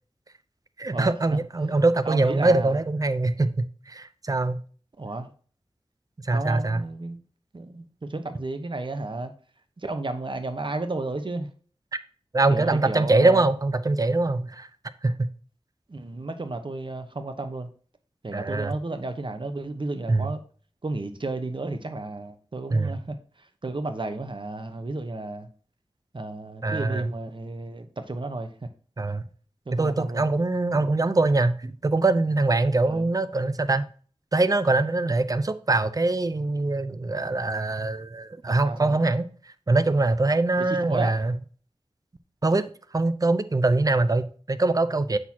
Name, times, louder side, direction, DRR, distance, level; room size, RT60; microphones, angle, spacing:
voice 1, 0.8-4.6 6.2-6.8 12.3-14.7 15.0-15.3 18.3-18.7 20.1-20.3 22.7-22.9 26.6-27.1 29.0-29.2 29.7-33.8 34.3-39.3 39.7-41.3 42.4-42.7 42.9-45.2, right 2 dB, 35° right, 0.6 m, -23 dB
voice 2, 2.0-2.8 5.0-5.3 6.3-7.2 7.5-9.3 9.8-11.5 12.5-13.5 15.9-17.7 18.2-20.4 20.8-25.5 26.1-28.5 29.7-30.3 32.8-33.1 38.6-39.0 40.6-41.2, right 2 dB, 55° right, 1.0 m, -32 dB
8.0 x 6.1 x 2.9 m
wide cardioid pair, 55°, 10 cm